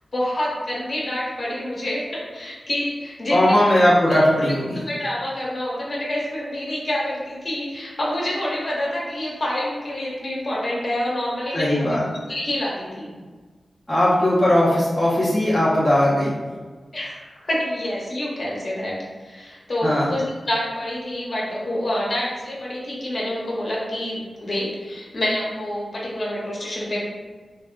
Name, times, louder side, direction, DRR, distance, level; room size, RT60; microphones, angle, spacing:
voice 1, 0.1-3.6 4.1-4.2 4.9-12.0 12.3-13.1 16.9-19.0 19.2-27.0, left 1 dB, 50° left, -5 dB, 1.0 m, -27 dB
voice 2, 3.3-4.8 11.5-12.0 13.9-16.6 19.8-20.1, left 1 dB, 20° left, -9 dB, 0.8 m, -18 dB
3.3 x 2.2 x 2.5 m, 1.4 s
cardioid pair, 60°, 0 cm